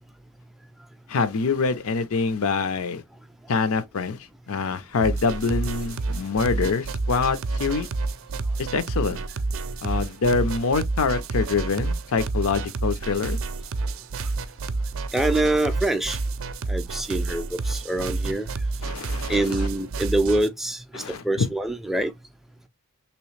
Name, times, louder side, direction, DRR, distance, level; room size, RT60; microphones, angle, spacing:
voice 1, 1.1-3.0 3.5-4.2 4.5-7.9 8.6-9.2 9.8-13.4 18.8-19.5 20.9-21.5, left 4 dB, 90° left, 0.6 m, -25 dB
sound 1, 5.0-20.5, right 3 dB, 70° right, 0.4 m, -29 dB
voice 2, 15.1-16.2 16.7-18.5 19.3-22.1, right 1 dB, ahead, 0.3 m, -25 dB
3.0 x 3.0 x 3.2 m
head